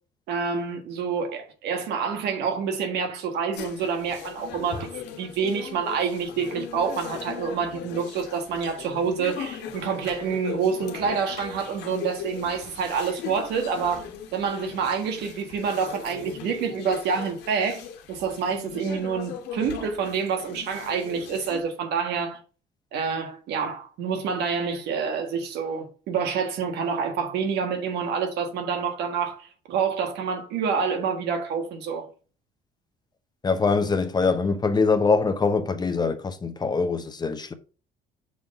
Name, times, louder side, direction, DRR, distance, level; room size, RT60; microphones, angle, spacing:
voice 1, 0.3-14.1 14.3-17.8 18.1-22.4 22.9-32.1, right 6 dB, 80° right, 1.6 m, -27 dB
sound 1, 3.6-21.6, left 7 dB, 85° left, 1.4 m, -39 dB
voice 2, 33.4-37.5, left 4 dB, 25° left, 0.8 m, -23 dB
6.3 x 3.7 x 5.3 m
cardioid pair, 110°, 17 cm